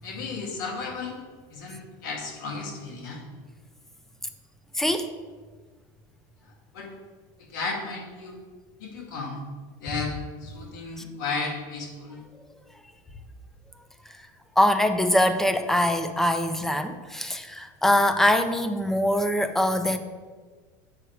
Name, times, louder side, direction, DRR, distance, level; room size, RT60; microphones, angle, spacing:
voice 1, 0.0-1.2 1.5-3.2 6.4-6.9 7.4-8.4 8.8-9.4 9.8-12.2, left 4 dB, 85° left, 0 dB, 2.1 m, -34 dB
voice 2, 4.8-5.1 14.6-20.0, left 1 dB, 5° left, 9 dB, 0.4 m, -23 dB
7.9 x 6.1 x 4.6 m, 1.5 s
supercardioid pair, 160°, 10 cm